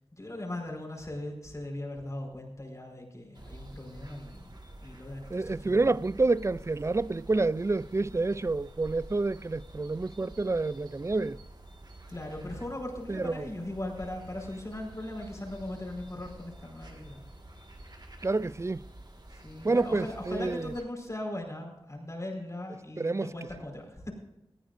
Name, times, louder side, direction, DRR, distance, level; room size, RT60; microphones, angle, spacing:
voice 1, 0.1-5.8 12.1-17.2 19.3-24.1, left 1 dB, 35° left, 4.8 m, -39 dB
sound 1, 3.3-20.8, right 1 dB, 45° right, 1.8 m, -49 dB
voice 2, 5.3-11.4 13.1-13.5 18.2-18.8 19.6-20.7 23.0-23.3, right 3 dB, 30° right, 0.4 m, -28 dB
19.5 x 14.0 x 2.6 m
wide cardioid pair, 70°, 10 cm